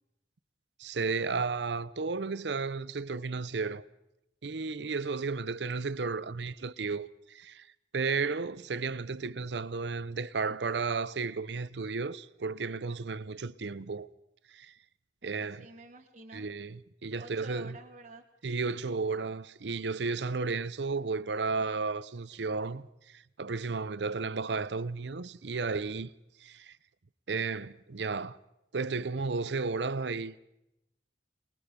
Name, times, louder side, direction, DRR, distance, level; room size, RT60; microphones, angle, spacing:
voice 1, 0.8-3.8 4.4-7.7 7.9-14.1 14.5-14.7 15.2-15.7 16.3-17.8 18.4-26.1 26.4-26.8 27.3-28.4 28.7-30.4, right 4 dB, 75° right, 0.7 m, -33 dB
voice 2, 15.2-16.5 17.2-18.2, right 2 dB, 40° right, 1.3 m, -50 dB
25.0 x 20.5 x 5.2 m
head